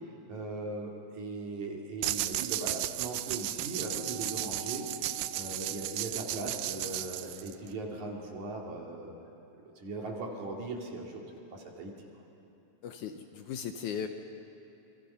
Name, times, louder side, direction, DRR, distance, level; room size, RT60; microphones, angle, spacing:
voice 1, 0.3-4.8 5.3-9.1 9.8-11.2 11.5-11.9, right 2 dB, 60° right, -1 dB, 3.7 m, -39 dB
sound 1, 2.0-7.7, right 15 dB, 80° right, 2.2 m, -35 dB
sound 2, 3.6-8.4, equal, 15° right, 1.2 m, -49 dB
voice 2, 12.8-14.1, left 8 dB, 75° left, 6 dB, 2.0 m, -37 dB
28.0 x 23.5 x 5.7 m, 3.0 s
omnidirectional pair, 4.0 m